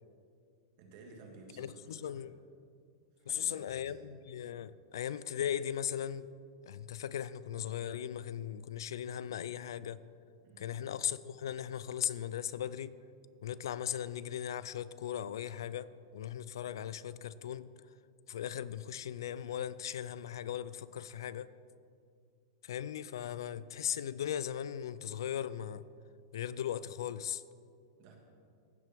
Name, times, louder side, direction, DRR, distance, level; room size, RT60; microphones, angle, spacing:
voice 1, 0.8-2.3 3.2-4.0 10.4-10.8 28.0-28.2, right 2 dB, 40° right, 1.7 m, -54 dB
voice 2, 1.6-2.3 3.3-6.3 6.7-10.0 10.6-13.0 13.4-17.7 18.3-21.5 22.6-25.8 26.3-27.4, left 10 dB, 90° left, 0.3 m, -38 dB
15.5 x 7.5 x 3.5 m
supercardioid pair, 170°, 2 cm